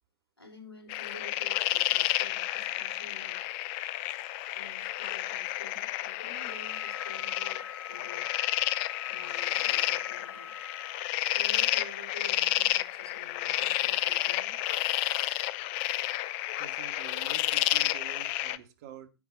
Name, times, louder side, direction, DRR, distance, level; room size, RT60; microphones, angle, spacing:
voice 1, 0.4-3.4 4.5-8.3 9.1-10.5 11.3-14.6, left 2 dB, 80° left, 3.7 m, -50 dB
sound 1, 0.9-18.6, left 16 dB, 30° left, 0.5 m, -31 dB
Wind instrument woodwind instrument, 6.4-11.1, left 3 dB, 80° right, 3.3 m, -47 dB
voice 2, 16.6-19.1, right 8 dB, 40° right, 1.5 m, -47 dB
9.9 x 9.1 x 4.0 m
figure-of-eight pair, 110°, 13 cm